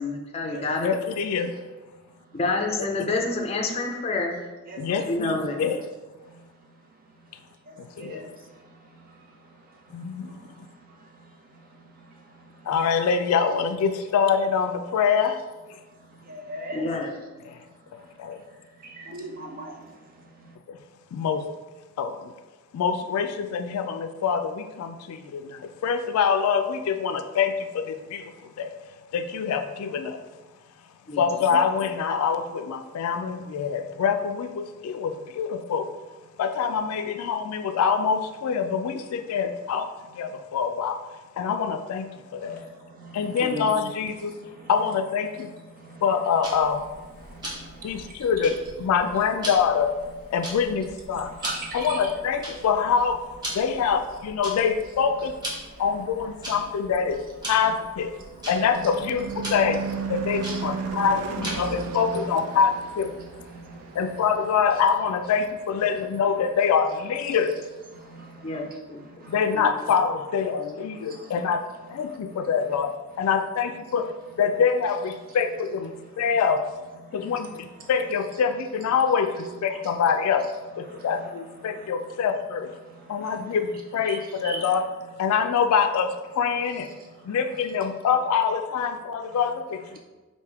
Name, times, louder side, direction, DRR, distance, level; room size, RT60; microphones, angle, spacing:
voice 1, 0.0-0.9 2.3-4.4 4.9-5.6 16.7-17.1 31.1-31.6 43.4-43.7 68.4-68.6 68.9-69.0 69.5-69.7 79.7-79.8, left 3 dB, 30° left, 2 dB, 0.5 m, -28 dB
voice 2, 0.8-1.5 3.0-3.1 4.8-5.8 7.8-8.2 9.9-10.4 12.7-15.4 15.7-15.8 17.5-17.6 18.2-18.4 20.7-20.8 21.1-21.5 22.0-22.3 22.7-28.7 29.1-30.2 31.2-35.9 36.4-41.0 41.4-42.1 42.3-42.6 43.1-44.4 44.7-45.5 46.0-46.8 47.8-49.9 50.3-51.3 51.7-55.4 55.8-57.2 57.5-58.1 58.5-63.2 63.9-67.6 69.3-74.1 74.4-76.7 77.1-82.7 83.1-84.8 85.2-86.9 87.3-89.8, left 6 dB, 90° left, 11 dB, 0.3 m, -25 dB
voice 3, 16.3-16.8 19.0-19.7 51.4-52.1 58.7-58.9 60.5-60.6 84.0-84.2 84.4-84.6, right 2 dB, 45° right, 1 dB, 0.7 m, -35 dB
Tick-tock, 46.4-61.8, equal, 20° right, 1.0 m, -40 dB
Car passing by / Truck / Engine, 57.8-66.4, right 6 dB, 80° right, 0.3 m, -35 dB
3.4 x 2.6 x 4.6 m, 1.2 s
head